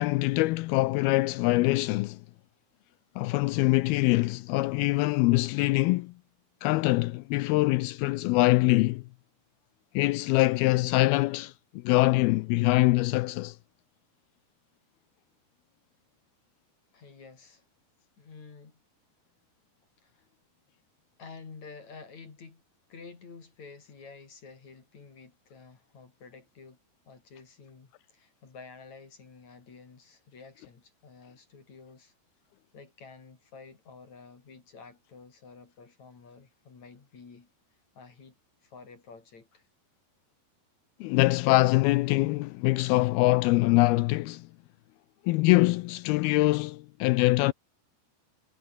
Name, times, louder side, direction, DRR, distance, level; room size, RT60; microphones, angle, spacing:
voice 1, 0.0-2.2 3.2-6.1 6.6-9.0 10.0-13.6 41.0-44.5 45.3-47.5, left 20 dB, 85° left, 2.2 m, -24 dB
voice 2, 16.9-17.7 18.2-18.8 20.0-20.3 21.2-22.6 22.9-26.8 27.1-32.1 32.7-37.5 37.9-38.4 38.6-39.7, left 4 dB, 40° left, 5.0 m, -50 dB
omnidirectional pair, 5.0 m